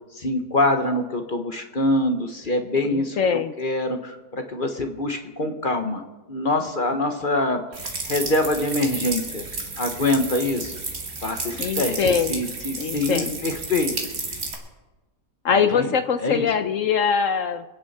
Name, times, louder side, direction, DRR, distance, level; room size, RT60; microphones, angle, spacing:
voice 1, 0.1-6.0 6.3-9.4 9.8-10.7 11.2-13.9 15.7-15.9 16.2-16.4, left 2 dB, 35° left, 6 dB, 1.1 m, -25 dB
voice 2, 2.8-3.5 11.6-12.4 12.8-13.4 15.4-17.6, left 6 dB, 60° left, 10 dB, 0.9 m, -22 dB
sound 1, 7.7-14.5, right 3 dB, 55° right, 2.6 m, -32 dB
25.5 x 9.9 x 4.2 m, 1.1 s
omnidirectional pair, 1.8 m